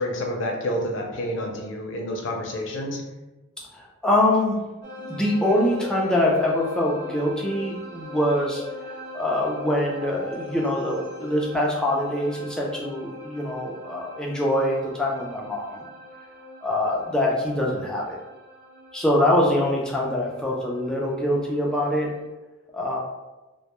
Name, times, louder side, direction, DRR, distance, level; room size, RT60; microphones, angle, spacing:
voice 1, 0.0-3.0, left 1 dB, 65° left, 1 dB, 0.5 m, -29 dB
voice 2, 3.8-4.6 5.1-8.6 9.1-15.8 16.6-18.2 18.9-22.1 22.7-23.0, left 1 dB, 5° left, -3 dB, 0.3 m, -24 dB
sound 1, 4.8-22.3, left 1 dB, 55° right, 0.5 m, -41 dB
2.1 x 2.1 x 2.9 m, 1.1 s
head